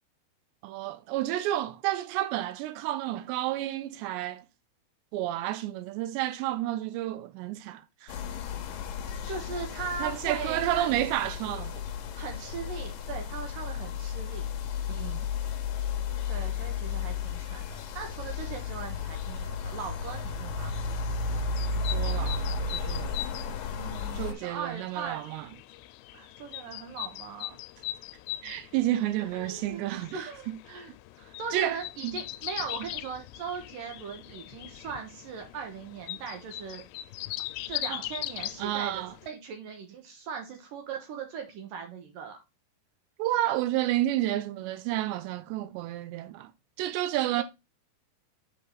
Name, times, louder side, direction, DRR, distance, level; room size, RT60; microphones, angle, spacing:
voice 1, 0.6-4.4 5.1-8.2 10.0-11.8 14.9-15.3 21.7-22.4 22.7-23.1 24.2-25.5 28.4-30.6 31.5-32.2 37.9-38.0 38.6-39.1 43.2-46.5 46.8-47.4, right 14 dB, 85° right, 3.0 m, -31 dB
sound 1, 8.1-24.3, left 5 dB, 70° left, 2.2 m, -33 dB
voice 2, 9.3-11.3 12.2-14.5 16.3-20.8 23.7-25.2 26.1-27.6 29.2-29.8 30.1-30.9 31.4-36.8 37.6-42.4 47.3-47.4, right 6 dB, 70° right, 2.4 m, -39 dB
sound 2, 21.5-39.3, left 16 dB, 85° left, 2.7 m, -41 dB
7.9 x 4.7 x 3.9 m
omnidirectional pair, 4.9 m